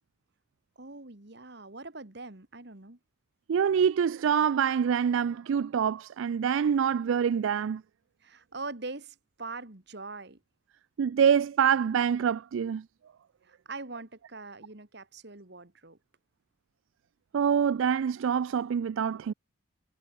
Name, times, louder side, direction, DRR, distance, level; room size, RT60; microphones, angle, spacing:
voice 1, 0.8-3.0 8.2-10.4 13.4-16.0, right 3 dB, 55° right, 1.9 m, -42 dB
voice 2, 3.5-7.8 11.0-12.8 17.3-19.3, right 7 dB, 70° right, 0.3 m, -25 dB
head